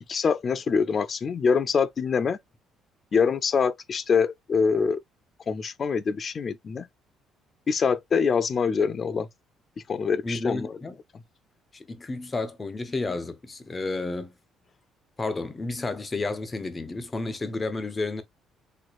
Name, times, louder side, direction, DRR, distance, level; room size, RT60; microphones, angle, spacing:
voice 1, 0.0-2.4 3.1-5.0 5.5-6.9 7.7-9.3 9.9-10.8, left 5 dB, 45° left, 0.4 m, -24 dB
voice 2, 10.2-11.0 11.7-14.3 15.2-18.2, left 3 dB, 25° left, 0.9 m, -31 dB
4.4 x 2.9 x 2.4 m
supercardioid pair, 80°, 0 cm